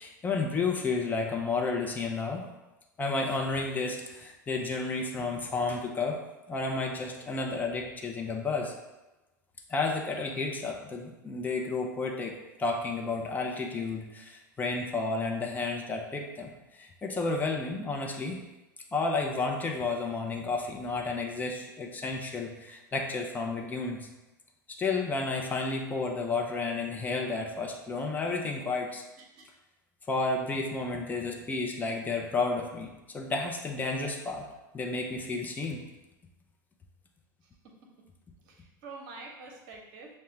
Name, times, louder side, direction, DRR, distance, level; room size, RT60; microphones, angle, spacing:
voice 1, 0.0-2.4 3.0-6.2 6.5-8.7 9.7-18.4 18.9-24.1 24.8-29.0 30.1-32.9 33.1-34.5 34.7-35.8, left 3 dB, 15° left, 1 dB, 0.6 m, -31 dB
voice 2, 29.2-29.5 37.4-37.9 38.4-40.2, right 3 dB, 45° right, 1 dB, 0.9 m, -47 dB
6.4 x 2.2 x 3.1 m, 1.0 s
figure-of-eight pair, 85°, 11 cm